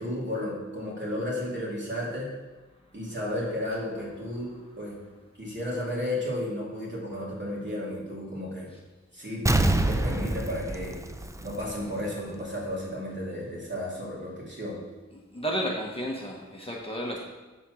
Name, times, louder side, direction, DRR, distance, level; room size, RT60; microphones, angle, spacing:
voice 1, 0.0-2.3 2.9-5.0 5.4-8.7 9.1-9.4 9.7-11.0 11.4-14.8, left 1 dB, 40° right, -5 dB, 2.6 m, -33 dB
Explosion, 9.5-12.1 12.4-12.5, right 1 dB, 10° right, 0.4 m, -26 dB
voice 2, 15.1-17.2, equal, 20° left, -2 dB, 1.1 m, -32 dB
7.2 x 4.1 x 6.3 m, 1.2 s
wide cardioid pair, 65°, 29 cm